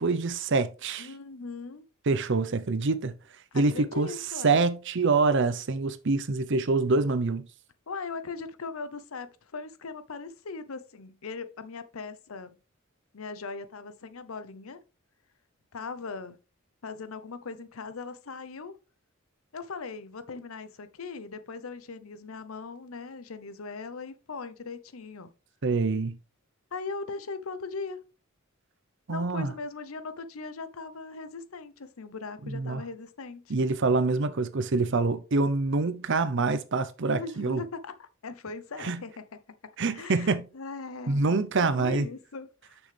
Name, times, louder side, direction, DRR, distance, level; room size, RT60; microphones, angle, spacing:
voice 1, 0.0-1.1 2.1-3.1 3.5-4.1 4.4-7.5 25.6-26.2 29.1-29.5 32.5-32.8 33.5-37.6 38.8-39.0 39.8-40.5 41.1-42.1, right 3 dB, 60° right, 0.7 m, -26 dB
voice 2, 1.0-1.9 3.5-4.7 7.9-12.6 13.1-14.8 15.7-16.4 16.8-18.7 19.5-25.3 26.7-28.0 29.1-33.5 37.1-39.1 39.9-41.4 41.8-42.8, left 4 dB, 80° left, 0.7 m, -39 dB
6.7 x 6.1 x 3.3 m
head